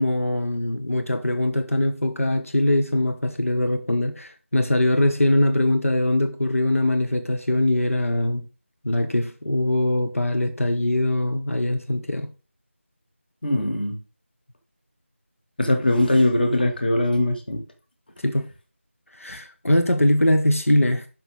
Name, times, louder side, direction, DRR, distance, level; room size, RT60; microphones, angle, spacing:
voice 1, 0.0-8.4 8.8-12.3 18.2-18.5 19.1-21.1, left 1 dB, 85° left, 1.1 m, -22 dB
voice 2, 13.4-14.0 15.6-17.6, left 1 dB, 45° left, 2.1 m, -21 dB
11.0 x 6.0 x 3.6 m
figure-of-eight pair, 170°, 7 cm